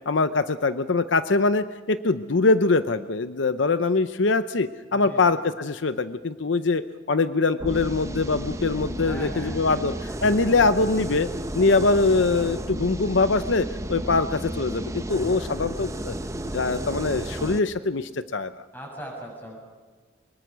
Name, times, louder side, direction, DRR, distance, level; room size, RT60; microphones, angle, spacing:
voice 1, 0.1-11.3 11.5-16.1 16.5-18.5, left 3 dB, 75° left, 12 dB, 0.7 m, -23 dB
sound 1, 7.6-17.6, right 1 dB, 15° right, 0.7 m, -33 dB
voice 2, 9.0-9.8 18.7-19.6, right 1 dB, 10° left, -1 dB, 7.1 m, -38 dB
23.5 x 21.5 x 6.3 m, 1.4 s
head